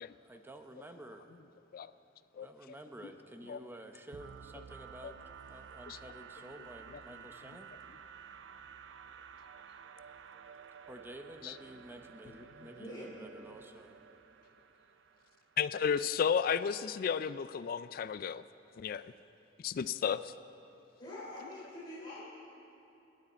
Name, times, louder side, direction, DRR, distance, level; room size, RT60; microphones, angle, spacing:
voice 1, 0.3-1.3 2.4-5.2 5.5-7.7 10.9-14.0, right 1 dB, 10° right, 6 dB, 0.9 m, -51 dB
sound 1, 4.1-15.9, right 7 dB, 85° right, 0.5 m, -53 dB
voice 2, 12.8-13.1 21.0-22.2, left 1 dB, 25° left, -8 dB, 3.3 m, -45 dB
voice 3, 15.6-18.4 18.8-19.0 19.6-20.3, left 7 dB, 55° left, 14 dB, 0.3 m, -33 dB
29.0 x 9.8 x 4.3 m, 2.9 s
head